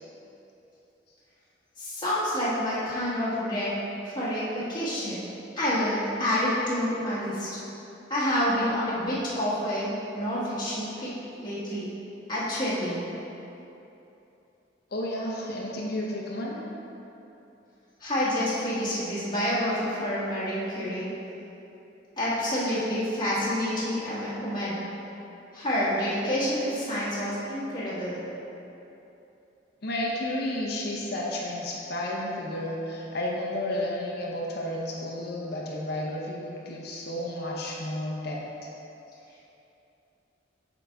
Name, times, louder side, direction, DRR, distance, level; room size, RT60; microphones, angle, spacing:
voice 1, 1.8-3.8 4.0-5.2 5.6-7.5 8.1-11.1 11.4-11.9 12.3-13.1 18.0-21.1 22.2-24.8 25.5-28.2, equal, 25° left, -10 dB, 1.4 m, -28 dB
voice 2, 14.9-16.6 29.8-38.7, left 1 dB, 60° left, -3 dB, 0.8 m, -32 dB
7.5 x 5.0 x 3.5 m, 2.9 s
head